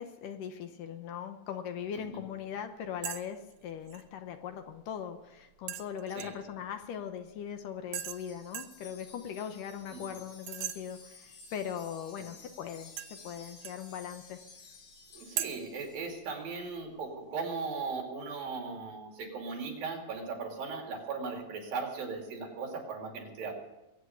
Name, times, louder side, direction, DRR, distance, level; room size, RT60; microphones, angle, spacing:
voice 1, 0.0-14.4, left 8 dB, 75° left, 7 dB, 2.3 m, -40 dB
sound 1, 3.0-3.2 3.5-4.0 5.7-6.5 7.9-8.2 8.5-8.8 10.5-10.8 13.0-13.8 15.4-15.5, right 11 dB, 90° right, 1.5 m, -38 dB
Wind chime, 8.0-16.2, left 4 dB, 60° left, 4.6 m, -54 dB
voice 2, 15.1-23.5, right 4 dB, 70° right, 2 dB, 4.3 m, -38 dB
22.0 x 9.0 x 7.0 m, 0.98 s
omnidirectional pair, 4.3 m